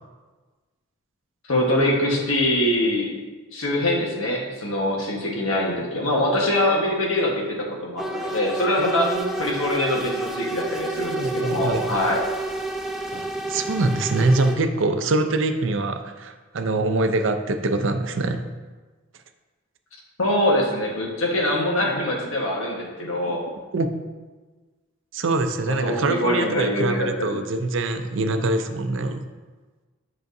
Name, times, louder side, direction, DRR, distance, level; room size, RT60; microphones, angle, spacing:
voice 1, 1.5-3.1 3.5-7.6 7.8-9.1 9.4-12.2 20.2-23.4 25.7-27.4, left 1 dB, 80° left, -2 dB, 1.3 m, -23 dB
sound 1, 8.0-14.5, right 2 dB, ahead, 0.4 m, -30 dB
voice 2, 8.8-9.3 11.1-11.8 13.1-18.4 23.7-23.9 25.1-29.2, right 2 dB, 65° right, 7 dB, 0.5 m, -24 dB
8.0 x 5.7 x 2.6 m, 1.3 s
head